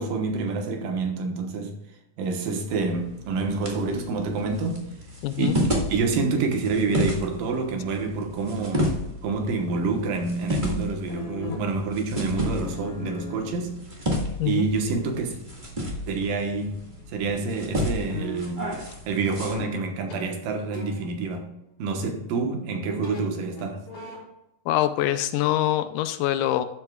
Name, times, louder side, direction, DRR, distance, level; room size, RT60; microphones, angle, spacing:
voice 1, 0.0-1.7 2.2-4.8 5.4-5.5 5.9-8.9 9.2-13.8 14.5-15.4 16.1-16.8 17.1-18.6 19.1-21.5 21.8-23.8, right 4 dB, 85° right, 3 dB, 2.9 m, -27 dB
sound 1, 2.7-19.5, equal, 25° right, 1.1 m, -32 dB
voice 2, 5.2-5.5 14.4-14.7 24.7-26.6, left 13 dB, 80° left, 11 dB, 2.1 m, -24 dB
sound 2, 11.0-17.0 17.3-18.6 19.5-19.8 20.1-20.2 20.7-21.0 23.0-23.2 23.5-24.2, left 3 dB, 60° left, 4.4 m, -41 dB
12.0 x 7.8 x 2.3 m, 0.88 s
omnidirectional pair, 3.8 m